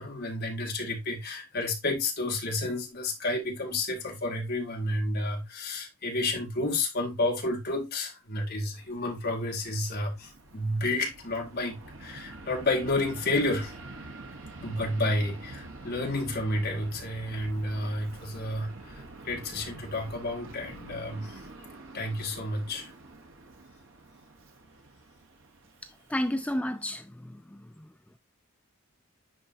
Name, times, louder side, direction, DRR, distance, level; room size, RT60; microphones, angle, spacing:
voice 1, 0.0-13.7 14.6-21.3 21.9-22.9, left 2 dB, 45° left, 2.2 m, -31 dB
Fixed-wing aircraft airplane, 8.7-26.6, right 2 dB, 60° right, 1.3 m, -47 dB
voice 2, 26.1-27.9, left 1 dB, 5° left, 0.3 m, -32 dB
10.0 x 3.9 x 2.8 m
head